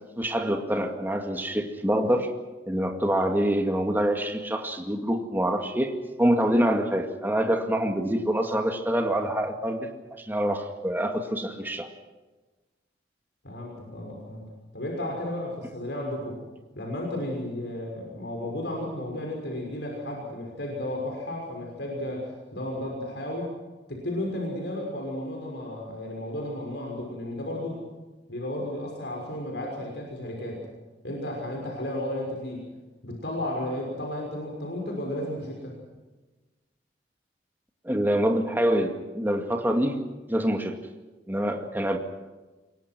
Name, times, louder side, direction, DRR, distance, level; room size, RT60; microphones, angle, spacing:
voice 1, 0.2-2.3 2.7-11.9 37.8-40.8 41.3-42.0, equal, 10° right, 4 dB, 2.1 m, -26 dB
voice 2, 13.4-14.4 14.7-16.4 16.7-23.5 23.9-27.8 28.3-30.6 31.0-32.6 33.0-35.7, left 1 dB, 70° left, 0 dB, 6.2 m, -33 dB
27.5 x 23.0 x 6.2 m, 1.2 s
head